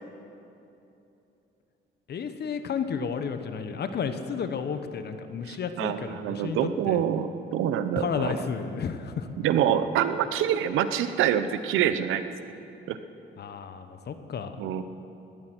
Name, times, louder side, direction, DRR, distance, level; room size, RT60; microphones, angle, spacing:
voice 1, 2.1-7.0 8.0-9.3 13.4-14.5, left 6 dB, 55° left, 9 dB, 1.1 m, -32 dB
voice 2, 5.5-8.3 9.4-12.2 12.9-13.0 14.6-14.8, right 10 dB, 90° right, 11 dB, 0.8 m, -26 dB
17.5 x 12.5 x 6.2 m, 2.9 s
cardioid pair, 90°, 20 cm